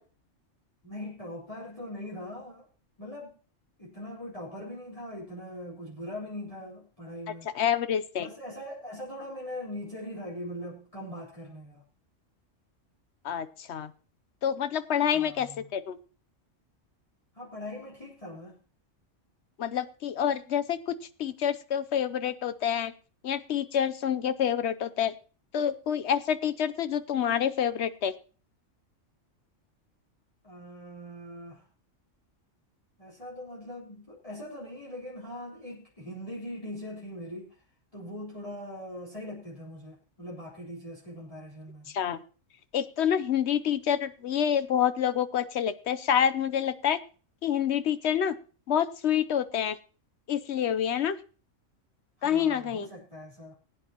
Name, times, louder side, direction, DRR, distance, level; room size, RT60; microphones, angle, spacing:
voice 1, 0.8-2.7 3.0-3.4 3.8-7.5 8.2-11.8 15.1-15.7 17.3-18.6 30.4-31.6 33.0-37.5 37.9-41.9 52.2-53.5, left 1 dB, 25° left, 3.7 m, -41 dB
voice 2, 7.5-8.3 13.2-13.9 14.4-16.0 19.6-20.9 21.2-22.9 23.2-25.1 25.5-28.1 41.9-42.2 42.7-47.0 47.4-48.4 48.7-49.8 50.3-51.2 52.2-52.9, left 9 dB, 65° left, 1.0 m, -27 dB
20.0 x 9.2 x 2.9 m
omnidirectional pair, 1.3 m